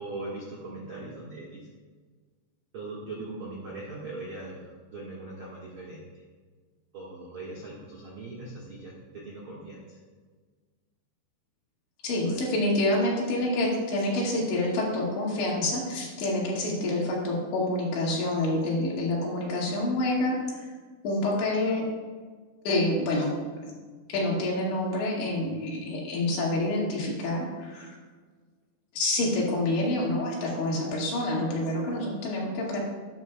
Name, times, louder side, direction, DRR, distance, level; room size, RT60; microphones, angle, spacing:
voice 1, 0.0-1.7 2.7-6.2 6.9-10.0 12.2-12.4, right 2 dB, 80° right, -5 dB, 1.1 m, -40 dB
voice 2, 12.0-20.6 21.0-21.8 22.7-23.3 24.1-28.0 29.0-32.8, left 1 dB, 80° left, -4 dB, 4.4 m, -27 dB
13.5 x 10.5 x 2.3 m, 1.5 s
omnidirectional pair, 5.2 m